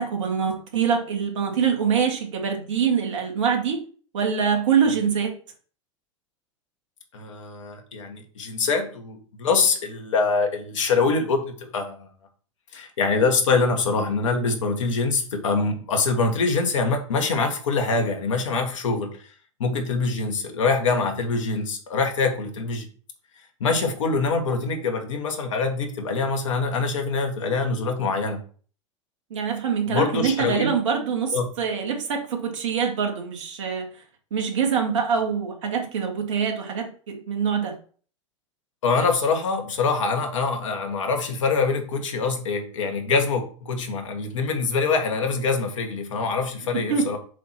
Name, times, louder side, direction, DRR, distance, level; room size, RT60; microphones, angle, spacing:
voice 1, 0.0-3.8 4.1-5.3 29.3-33.9 34.3-37.8 46.7-47.1, right 6 dB, 70° right, 2 dB, 2.0 m, -24 dB
voice 2, 7.1-12.1 12.7-19.3 19.6-22.9 23.6-28.4 29.9-30.7 31.3-31.5 38.8-47.2, left 4 dB, 75° left, 3 dB, 1.6 m, -24 dB
7.3 x 2.9 x 6.0 m, 0.42 s
hypercardioid pair, 90°, 16 cm